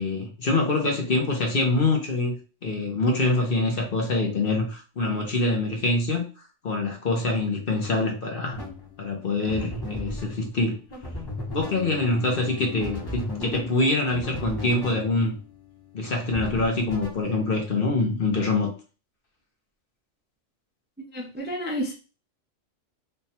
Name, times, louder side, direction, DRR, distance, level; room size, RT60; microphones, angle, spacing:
voice 1, 0.0-2.4 2.6-6.2 6.6-8.6 9.0-10.8 11.5-15.4 15.9-18.7, left 2 dB, 50° left, 1 dB, 1.0 m, -25 dB
sound 1, 8.5-18.0, left 2 dB, 20° left, 1.0 m, -37 dB
voice 2, 21.1-21.9, equal, 10° right, -2 dB, 0.5 m, -30 dB
3.3 x 2.4 x 4.1 m, 0.34 s
omnidirectional pair, 1.3 m